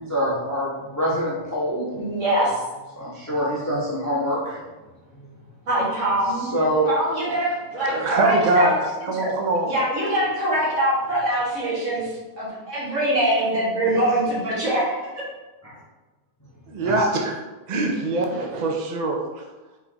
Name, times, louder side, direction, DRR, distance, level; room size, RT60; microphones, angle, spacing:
voice 1, 0.0-1.9 3.0-4.6 5.1-5.3 6.3-6.9 7.9-8.3 13.9-14.0 15.6-15.8 16.8-17.1, equal, 15° left, -6 dB, 0.7 m, -26 dB
voice 2, 1.9-2.5 5.7-6.5 6.9-8.8 9.2-9.3 9.7-12.1 12.4-15.2, right 1 dB, 60° right, -8 dB, 2.1 m, -23 dB
voice 3, 7.9-9.7 16.7-17.4 17.7-19.5, right 2 dB, 80° right, 1 dB, 0.4 m, -23 dB
4.4 x 4.2 x 2.9 m, 1.2 s
omnidirectional pair, 1.5 m